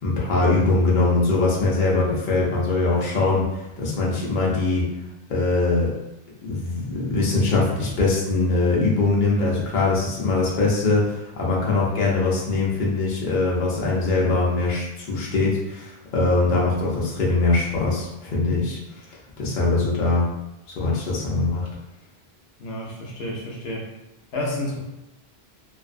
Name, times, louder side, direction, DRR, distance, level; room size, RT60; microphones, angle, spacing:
voice 1, 0.0-3.4 3.8-4.8 5.3-5.9 6.4-18.8 19.4-20.3 20.7-21.7, left 3 dB, 55° left, -4 dB, 0.8 m, -22 dB
voice 2, 22.6-23.9 24.3-24.8, left 1 dB, 85° left, -2 dB, 0.9 m, -30 dB
2.4 x 2.2 x 2.4 m, 0.93 s
omnidirectional pair, 1.0 m